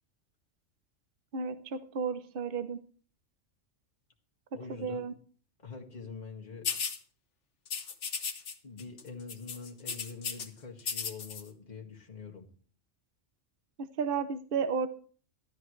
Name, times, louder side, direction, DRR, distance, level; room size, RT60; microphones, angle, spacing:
voice 1, 1.3-2.8 4.7-5.1 13.8-14.9, right 6 dB, 50° right, 11 dB, 0.9 m, -33 dB
voice 2, 4.5-5.1 5.6-6.7 8.6-12.5, left 5 dB, 35° left, 0 dB, 2.0 m, -45 dB
sound 1, 6.6-7.0 7.7-8.5 8.8-9.0 9.3-10.5 10.8-11.4, left 6 dB, 60° left, 1.4 m, -35 dB
13.0 x 12.5 x 3.2 m, 0.43 s
omnidirectional pair, 1.4 m